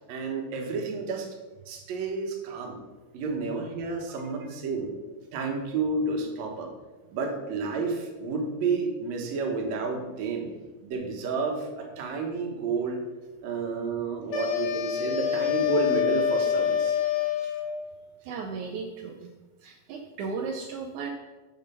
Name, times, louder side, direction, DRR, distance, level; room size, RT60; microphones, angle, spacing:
voice 1, 0.1-1.3 1.7-2.8 3.1-4.9 5.3-6.7 7.1-10.5 10.8-13.0 13.4-17.0, right 4 dB, 60° right, 2 dB, 2.0 m, -30 dB
voice 2, 4.2-4.6 18.2-19.3 19.6-21.1, right 5 dB, 85° right, 3 dB, 1.7 m, -36 dB
sound 1, 14.3-17.8, left 9 dB, 80° left, 2.9 m, -26 dB
7.2 x 5.1 x 5.5 m, 1.2 s
omnidirectional pair, 4.2 m